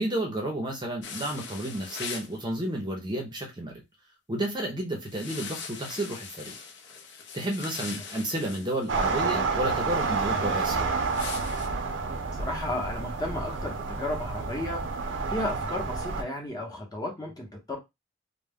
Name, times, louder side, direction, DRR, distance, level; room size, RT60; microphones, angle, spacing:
voice 1, 0.0-3.8 4.3-6.5 7.3-10.9, right 1 dB, 25° right, 0.6 m, -31 dB
sound 1, 1.0-2.3 5.1-9.1 11.1-11.7, left 6 dB, 65° left, 0.6 m, -40 dB
sound 2, 8.9-16.2, right 4 dB, 70° right, 0.5 m, -29 dB
voice 2, 12.3-14.9 15.3-17.8, left 1 dB, 20° left, 0.8 m, -33 dB
2.2 x 2.1 x 3.4 m
head